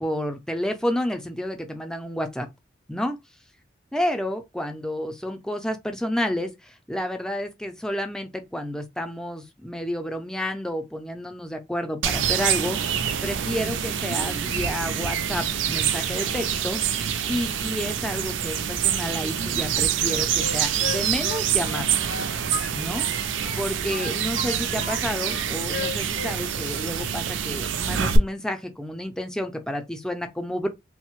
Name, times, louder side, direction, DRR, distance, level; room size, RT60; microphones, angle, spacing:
voice 1, 0.0-2.5 2.9-3.2 3.9-6.5 6.9-12.8 13.2-16.8 17.3-22.0 22.7-23.1 23.6-30.7, left 1 dB, 5° left, 0.4 m, -30 dB
sound 1, 12.0-28.2, right 8 dB, 85° right, 0.4 m, -26 dB
Wind instrument woodwind instrument, 20.0-23.1 23.4-25.0 25.3-26.4 26.6-26.9, left 5 dB, 70° left, 0.4 m, -35 dB
3.1 x 2.1 x 3.0 m
head